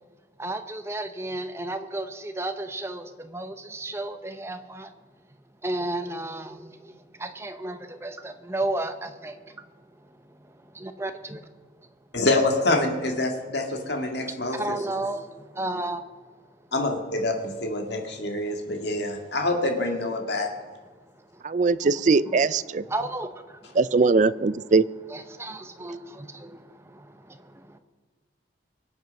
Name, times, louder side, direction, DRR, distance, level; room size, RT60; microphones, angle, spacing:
voice 1, 0.4-4.9 5.6-11.4 14.5-16.0 18.5-18.6 20.5-20.6 21.2-21.9 22.3-22.4 22.9-23.8 25.1-27.8, right 2 dB, 15° right, 0.8 m, -34 dB
voice 2, 12.1-14.6 16.7-20.5, left 2 dB, 60° left, 2.0 m, -26 dB
voice 3, 21.4-22.8 23.8-24.8, right 4 dB, 40° right, 0.4 m, -21 dB
24.0 x 8.0 x 5.3 m
head